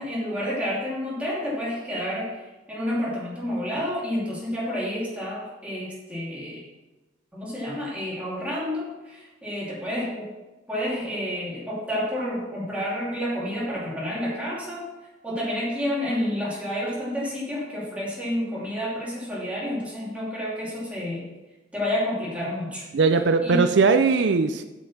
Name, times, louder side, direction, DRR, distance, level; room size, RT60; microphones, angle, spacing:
voice 1, 0.0-6.6 7.3-10.3 10.7-14.9 15.2-21.3 21.7-22.9 23.4-23.7, left 1 dB, 5° right, -6 dB, 2.7 m, -29 dB
voice 2, 22.9-24.6, right 4 dB, 70° right, 9 dB, 0.4 m, -19 dB
10.0 x 5.3 x 5.9 m, 1.1 s
head